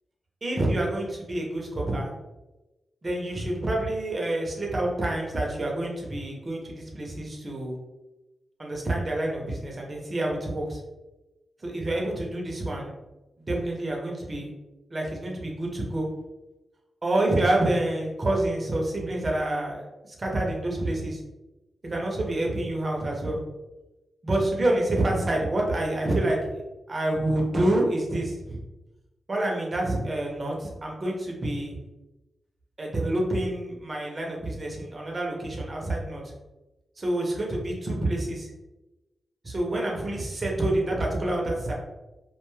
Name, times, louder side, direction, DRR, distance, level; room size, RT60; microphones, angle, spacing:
voice 1, 0.4-2.1 3.0-7.8 8.6-10.8 11.6-12.9 13.5-14.5 14.9-16.1 17.0-19.8 20.2-21.2 21.8-23.4 24.2-26.6 26.9-28.6 29.3-31.7 32.8-36.2 37.0-38.5 39.4-41.7, right 1 dB, 35° right, -1 dB, 0.7 m, -27 dB
2.4 x 2.3 x 3.0 m, 1.0 s
wide cardioid pair, 110°, 0 cm